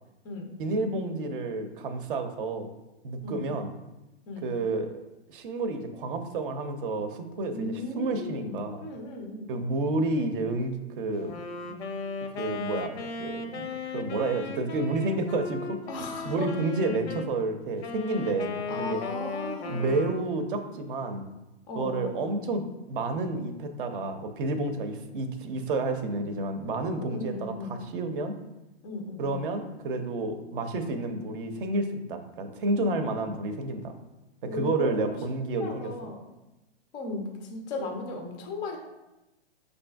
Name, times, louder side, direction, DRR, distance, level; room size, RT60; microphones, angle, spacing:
voice 1, 0.6-2.7 3.0-3.8 4.4-5.0 5.3-8.9 9.5-11.4 12.4-13.7 13.9-15.8 16.2-19.0 19.7-21.3 21.7-28.3 29.2-34.0 34.4-35.9, right 2 dB, 55° right, 7 dB, 0.6 m, -30 dB
voice 2, 7.5-9.5 15.9-16.5 18.7-20.1 21.7-22.4 27.0-27.9 28.8-29.5 34.5-35.1 35.6-36.3 36.9-38.8, left 2 dB, 15° left, 1 dB, 0.3 m, -36 dB
Wind instrument woodwind instrument, 11.1-17.3 17.8-20.4, left 4 dB, 80° left, 0.6 m, -37 dB
6.3 x 2.6 x 2.3 m, 0.99 s
hypercardioid pair, 130°, 33 cm